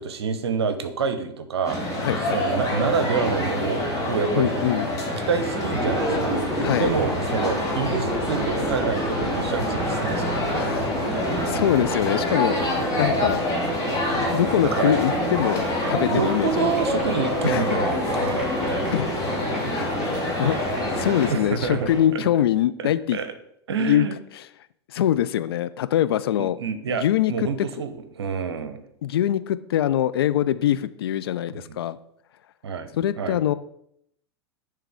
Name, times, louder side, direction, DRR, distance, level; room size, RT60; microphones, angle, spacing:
voice 1, 0.0-1.8 2.3-4.6 5.3-6.4 6.8-10.3 14.6-14.9 16.0-19.0 20.4-20.6 21.3-22.3 22.8-23.3 23.7-24.2 26.4-28.8 31.5-31.8 32.6-32.9 33.2-33.4, right 6 dB, 65° right, 10 dB, 0.8 m, -28 dB
sound 1, 1.6-21.3, left 1 dB, 25° left, 2.2 m, -26 dB
voice 2, 2.0-2.4 4.3-4.9 6.6-6.9 10.3-10.9 11.2-12.6 13.0-13.4 14.1-16.7 17.4-17.6 18.9-19.1 19.7-20.5 20.9-23.2 23.8-24.1 24.4-24.5 24.9-26.6 26.9-27.3 29.0-32.0 32.9-33.5, left 11 dB, 60° left, 13 dB, 0.4 m, -23 dB
sound 2, 5.8-22.0, right 1 dB, 5° right, 2.2 m, -31 dB
10.0 x 3.4 x 3.5 m, 0.72 s
figure-of-eight pair, 90°, 14 cm